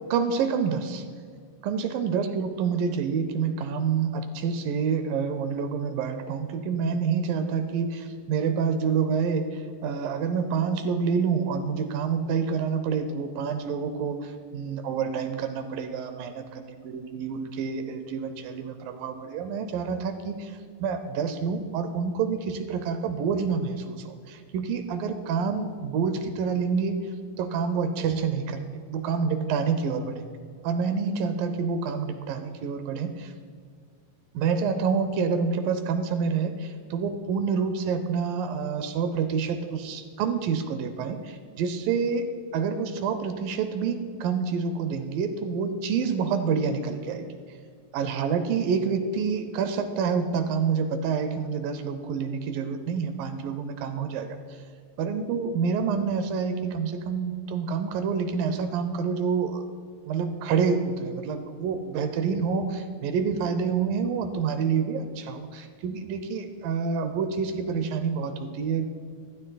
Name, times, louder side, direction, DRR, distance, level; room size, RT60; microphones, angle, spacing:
voice 1, 0.1-1.0 1.6-27.0 27.4-30.2 30.6-33.3 34.3-42.3 42.5-47.4 47.9-54.6 55.0-59.6 60.1-68.9, right 6 dB, 80° right, 8 dB, 2.3 m, -28 dB
15.0 x 12.5 x 2.3 m, 2.1 s
omnidirectional pair, 4.2 m